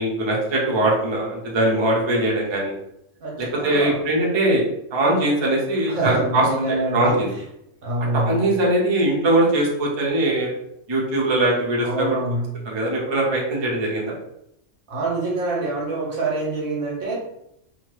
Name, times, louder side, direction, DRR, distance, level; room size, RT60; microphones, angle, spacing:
voice 1, 0.0-2.7 3.4-4.6 4.9-7.3 8.1-10.5 10.9-12.2 12.7-14.1, right 1 dB, 30° right, -2 dB, 0.5 m, -21 dB
voice 2, 3.2-4.0 5.9-7.2 7.8-8.4 11.8-12.6 14.9-17.1, right 2 dB, 85° right, -2 dB, 1.3 m, -26 dB
2.8 x 2.2 x 3.2 m, 0.77 s
omnidirectional pair, 1.4 m